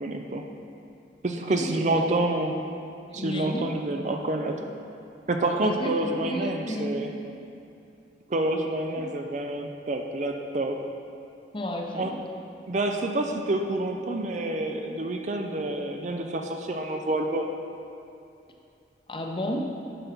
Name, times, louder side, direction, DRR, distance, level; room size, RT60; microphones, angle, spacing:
voice 1, 0.0-0.5 1.2-2.6 3.1-4.6 5.3-7.1 8.3-10.8 11.9-12.1 12.7-17.5, right 2 dB, 40° right, 4 dB, 0.5 m, -28 dB
voice 2, 3.1-3.7 5.6-7.1 11.5-12.2 19.1-19.6, left 1 dB, 30° left, 1 dB, 0.8 m, -32 dB
9.1 x 5.4 x 6.0 m, 2.6 s
head